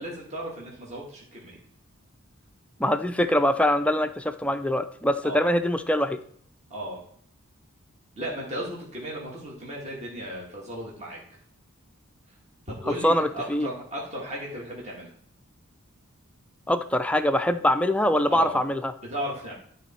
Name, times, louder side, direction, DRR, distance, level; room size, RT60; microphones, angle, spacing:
voice 1, 0.0-1.6 5.2-5.5 6.7-7.0 8.2-11.2 12.7-15.1 18.3-18.6 19.0-19.5, equal, 30° right, -4 dB, 1.8 m, -35 dB
voice 2, 2.8-6.2 12.9-13.7 16.7-18.9, left 1 dB, 5° left, 9 dB, 0.4 m, -23 dB
12.0 x 4.1 x 4.3 m, 0.63 s
head